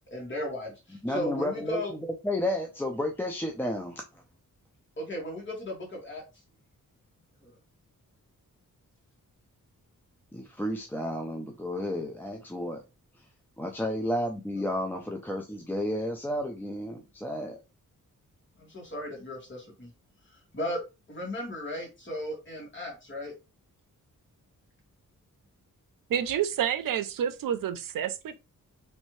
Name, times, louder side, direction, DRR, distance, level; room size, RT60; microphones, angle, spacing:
voice 1, 0.1-1.9 5.0-6.2 7.4-7.5 18.6-19.9 20.5-20.8 21.1-23.3, left 1 dB, 35° left, 1.7 m, -36 dB
voice 2, 1.0-4.0 10.3-12.8 13.6-17.6, left 1 dB, 5° left, 0.4 m, -32 dB
voice 3, 26.1-28.4, right 9 dB, 85° right, 0.5 m, -29 dB
3.2 x 2.6 x 3.1 m
wide cardioid pair, 135°, 33 cm